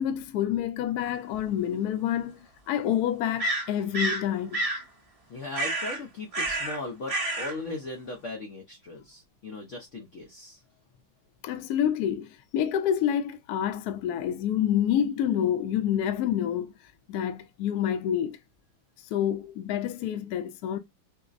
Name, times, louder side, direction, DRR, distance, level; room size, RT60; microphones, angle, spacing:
voice 1, 0.0-2.4 2.7-4.6 11.4-16.7 17.1-18.4 19.1-20.8, left 10 dB, 70° left, 0.9 m, -28 dB
sound 1, 1.3-1.4 3.4-4.2 4.5-4.8 5.5-6.0 6.3-6.8 7.1-7.5, right 1 dB, 35° right, 0.5 m, -29 dB
voice 2, 5.3-10.6, left 2 dB, 90° left, 0.6 m, -38 dB
4.8 x 2.0 x 2.4 m
omnidirectional pair, 2.2 m